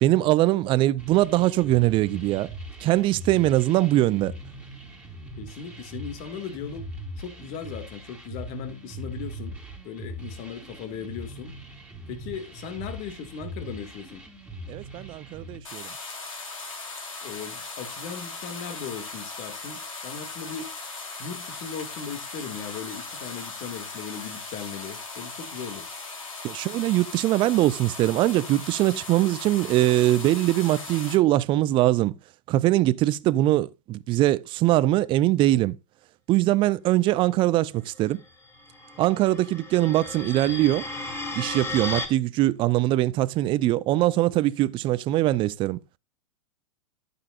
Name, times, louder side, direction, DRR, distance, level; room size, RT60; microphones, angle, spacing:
voice 1, 0.0-2.5 2.8-4.3 14.7-15.9 26.4-32.1 32.5-35.8 36.3-38.2 39.0-40.9 41.4-45.8, right 16 dB, 30° right, 0.5 m, -22 dB
sound 1, 1.0-15.6, right 1 dB, 5° right, 3.8 m, -41 dB
voice 2, 5.4-6.9 7.2-9.5 9.8-11.6 12.1-14.2 17.2-20.7 21.2-25.9, left 7 dB, 45° left, 2.1 m, -38 dB
sound 2, 15.6-31.1, left 3 dB, 75° left, 3.4 m, -38 dB
sound 3, 38.5-42.1, left 2 dB, 15° left, 2.6 m, -34 dB
13.0 x 7.0 x 2.5 m
figure-of-eight pair, 100°, 17 cm